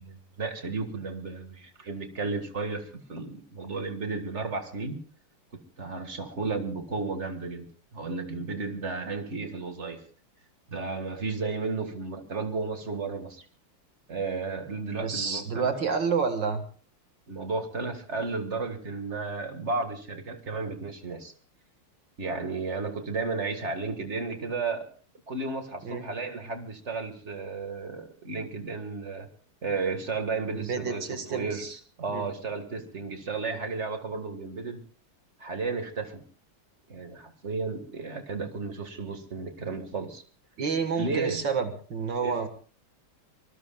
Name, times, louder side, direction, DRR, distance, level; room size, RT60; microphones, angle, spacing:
voice 1, 0.0-5.0 5.5-10.0 10.7-13.5 14.1-15.7 17.3-21.3 22.2-24.9 25.3-29.3 29.6-31.6 32.0-34.8 35.4-36.2 36.9-40.2 40.9-41.4 42.2-42.5, right 4 dB, 35° right, 6 dB, 1.9 m, -33 dB
voice 2, 15.0-16.6 25.8-26.0 30.5-31.8 32.1-32.2 40.6-42.5, right 5 dB, 60° right, 7 dB, 2.2 m, -29 dB
25.5 x 20.0 x 2.3 m, 0.41 s
omnidirectional pair, 2.4 m